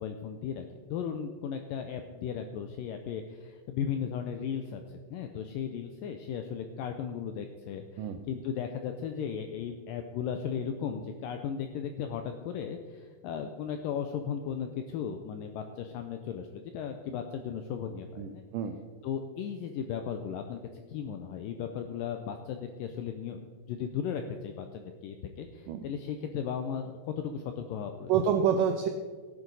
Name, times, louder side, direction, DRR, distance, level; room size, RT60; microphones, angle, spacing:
voice 1, 0.0-18.4 19.0-20.6 20.9-28.1, left 7 dB, 80° left, 5 dB, 2.0 m, -36 dB
voice 2, 18.2-18.8 25.7-25.8 28.1-28.9, right 7 dB, 85° right, 6 dB, 1.9 m, -27 dB
17.0 x 9.3 x 4.0 m, 1.5 s
omnidirectional pair, 4.6 m